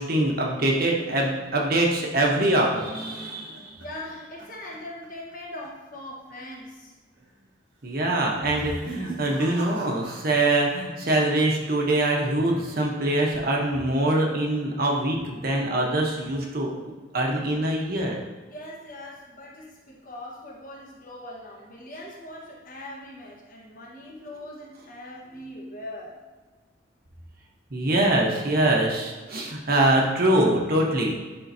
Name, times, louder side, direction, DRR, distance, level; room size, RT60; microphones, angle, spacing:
voice 1, 0.0-3.8 7.8-16.7 17.1-18.2 27.7-31.1, right 1 dB, 50° right, -1 dB, 1.0 m, -24 dB
sound 1, 3.3-5.4 5.6-6.0 6.3-6.4 7.1-7.5 8.4-10.8 11.1-11.7, right 3 dB, 75° right, 1.4 m, -42 dB
voice 2, 3.8-6.9 18.5-26.2, left 1 dB, 45° left, -3 dB, 1.4 m, -41 dB
10.0 x 3.8 x 2.7 m, 1.3 s
head